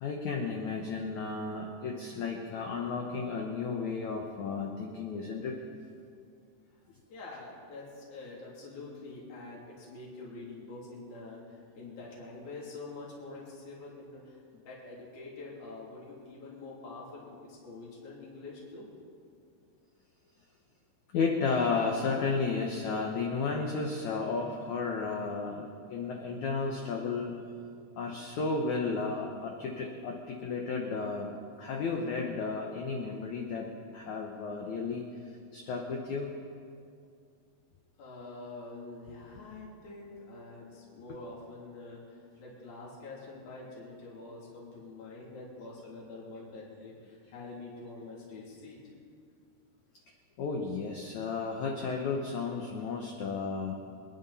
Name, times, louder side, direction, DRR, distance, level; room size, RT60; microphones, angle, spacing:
voice 1, 0.0-5.6 21.1-27.4 28.0-36.3 50.4-53.7, left 4 dB, 80° left, 1 dB, 1.7 m, -33 dB
voice 2, 7.1-18.9 38.0-48.8, left 3 dB, 50° left, -5 dB, 4.2 m, -46 dB
25.5 x 10.5 x 4.1 m, 2.3 s
omnidirectional pair, 4.8 m